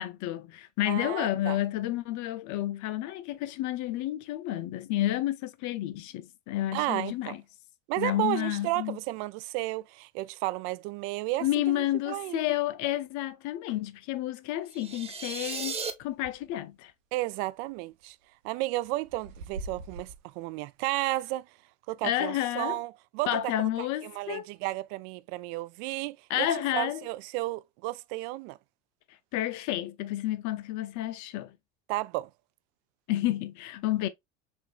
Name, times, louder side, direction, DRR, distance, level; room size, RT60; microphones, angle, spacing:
voice 1, 0.0-7.4 8.0-9.0 11.4-16.9 22.0-22.8 23.3-24.5 26.3-27.0 29.3-31.5 33.1-34.1, left 14 dB, 50° left, 0.6 m, -30 dB
voice 2, 0.9-1.6 6.7-7.4 7.9-12.4 17.1-18.2 18.4-21.5 21.9-26.5 26.7-28.6 31.9-32.3, right 19 dB, 55° right, 0.4 m, -33 dB
sound 1, 14.7-15.9, right 5 dB, 15° right, 0.7 m, -35 dB
sound 2, 15.8-16.5 16.9-17.0 17.7-18.0 18.6-20.3, right 2 dB, 75° right, 0.9 m, -43 dB
5.8 x 2.6 x 2.4 m
hypercardioid pair, 70°, 39 cm